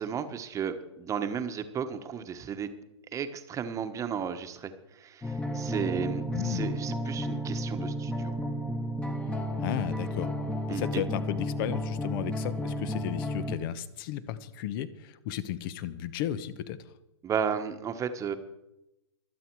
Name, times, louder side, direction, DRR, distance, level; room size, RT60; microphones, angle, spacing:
voice 1, 0.0-2.7 3.1-8.3 10.7-11.0 17.2-18.4, right 7 dB, 20° right, 8 dB, 1.3 m, -34 dB
sound 1, 5.2-13.6, equal, 5° left, 1.3 m, -32 dB
voice 2, 6.3-6.7 9.6-10.3 10.7-16.8, left 11 dB, 45° left, 15 dB, 1.2 m, -34 dB
24.0 x 8.5 x 4.8 m, 0.92 s
hypercardioid pair, 120°, 16 cm